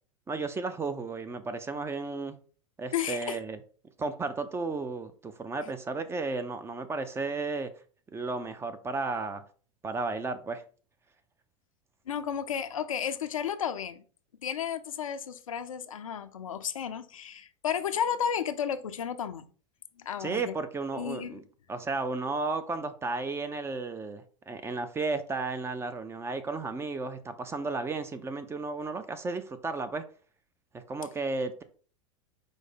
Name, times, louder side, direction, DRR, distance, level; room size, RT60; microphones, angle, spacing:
voice 1, 0.3-2.4 2.8-3.6 4.0-7.7 8.1-9.4 9.8-10.6 20.2-21.4 21.7-30.0 30.7-31.6, right 3 dB, 15° right, 0.4 m, -33 dB
voice 2, 2.9-3.4 12.1-14.0 14.4-19.5 20.0-20.5 20.9-21.4, left 8 dB, 85° left, 0.4 m, -33 dB
4.7 x 2.1 x 4.2 m
hypercardioid pair, 95°, 17 cm